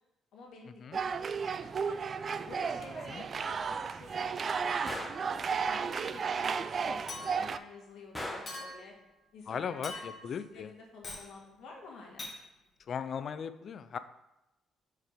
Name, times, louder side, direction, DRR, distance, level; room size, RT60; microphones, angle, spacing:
voice 1, 0.3-1.2 1.4-2.0 2.4-4.8 5.3-8.9 9.3-10.1 10.4-12.3, left 3 dB, 75° left, 0 dB, 1.6 m, -51 dB
sound 1, 0.9-7.6, right 5 dB, 45° right, 0.3 m, -33 dB
Gunshot gunfire, 4.9-5.3 8.1-8.6, left 1 dB, 10° left, 1.2 m, -39 dB
Chink clink, 7.1-7.6 8.5-8.9 9.8-10.3 11.0-11.3 12.2-12.4, left 2 dB, 40° left, 2.0 m, -43 dB
voice 2, 9.5-10.7 12.9-14.0, left 7 dB, 55° left, 12 dB, 0.4 m, -37 dB
4.8 x 4.4 x 5.0 m, 0.94 s
cardioid pair, 85°, 0 cm